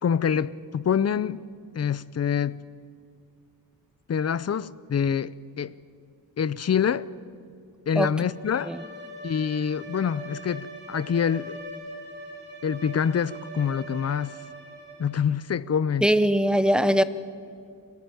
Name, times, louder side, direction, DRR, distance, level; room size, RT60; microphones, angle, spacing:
voice 1, 0.0-1.4 1.7-2.6 4.1-5.3 5.6-5.7 6.4-7.1 7.9-8.7 9.2-11.6 12.6-14.4 15.0-16.0, left 7 dB, 45° left, 0.5 m, -26 dB
Bowed string instrument, 8.2-15.3, right 1 dB, 30° right, 5.1 m, -42 dB
voice 2, 16.0-17.0, equal, ahead, 0.7 m, -21 dB
23.5 x 17.0 x 9.1 m
wide cardioid pair, 135°, 36 cm